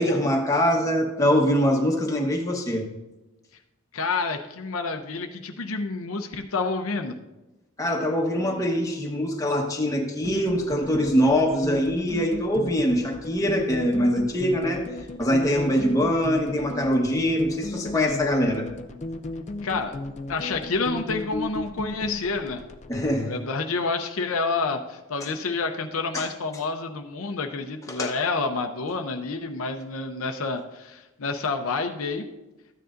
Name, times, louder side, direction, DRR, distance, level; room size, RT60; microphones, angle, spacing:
voice 1, 0.0-2.9 7.8-14.8 15.2-18.6 22.9-23.3 26.1-26.2 27.9-28.1, equal, 15° left, 0 dB, 1.1 m, -23 dB
voice 2, 3.9-7.2 19.6-20.0 20.3-22.6 23.2-32.2, left 4 dB, 70° left, 5 dB, 0.7 m, -29 dB
sound 1, 10.2-23.2, left 2 dB, 30° left, 0.5 m, -35 dB
13.5 x 9.3 x 2.5 m, 1.0 s
head